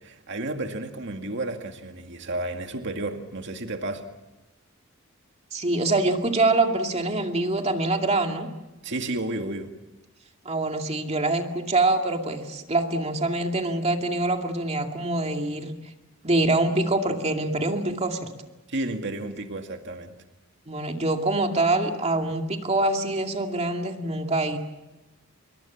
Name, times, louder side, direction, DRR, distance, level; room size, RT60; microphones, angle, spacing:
voice 1, 0.0-4.1 8.8-9.7 18.7-20.1, right 2 dB, 60° right, 5 dB, 2.2 m, -32 dB
voice 2, 5.5-8.5 10.4-15.8 16.2-18.2 20.7-24.6, right 2 dB, 30° right, 4 dB, 2.3 m, -25 dB
27.0 x 23.0 x 7.3 m, 1.1 s
head